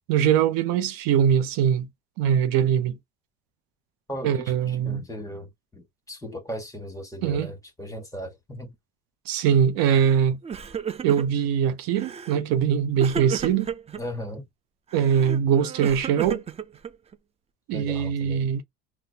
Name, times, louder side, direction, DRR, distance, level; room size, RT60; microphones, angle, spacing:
voice 1, 0.1-1.9 2.2-3.0 4.2-5.0 7.2-7.5 9.3-10.4 11.0-13.7 14.9-16.4 17.7-18.6, right 8 dB, 75° right, 0.7 m, -22 dB
voice 2, 4.1-8.7 14.0-14.4 17.7-18.5, equal, 10° left, 1.5 m, -37 dB
Crying sobbing, 9.8-10.2 10.4-11.5 12.0-12.4 13.0-14.0 14.9-17.2, right 6 dB, 20° right, 0.3 m, -34 dB
4.0 x 2.1 x 2.7 m
cardioid pair, 100°, 35 cm